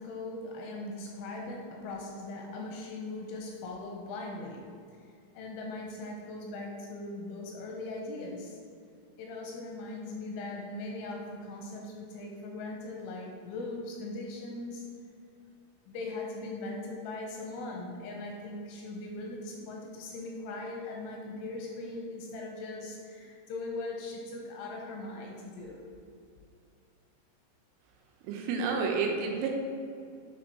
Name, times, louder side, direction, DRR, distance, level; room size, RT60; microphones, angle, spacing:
voice 1, 0.0-4.7 5.3-8.6 9.2-14.8 15.9-25.8, left 2 dB, 85° left, -1 dB, 3.0 m, -40 dB
voice 2, 28.3-29.5, right 5 dB, 90° right, 1 dB, 3.5 m, -30 dB
9.6 x 3.5 x 4.0 m, 2.4 s
omnidirectional pair, 5.9 m